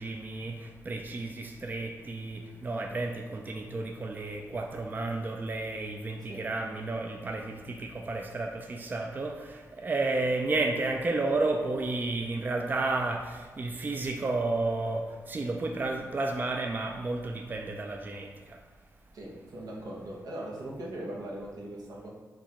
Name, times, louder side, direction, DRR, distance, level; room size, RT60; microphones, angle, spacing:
voice 1, 0.0-18.7, right 2 dB, 30° right, 3 dB, 0.3 m, -32 dB
voice 2, 19.1-22.1, right 1 dB, 85° right, -3 dB, 0.9 m, -40 dB
4.4 x 2.4 x 4.1 m, 1.4 s
cardioid pair, 80°, 6 cm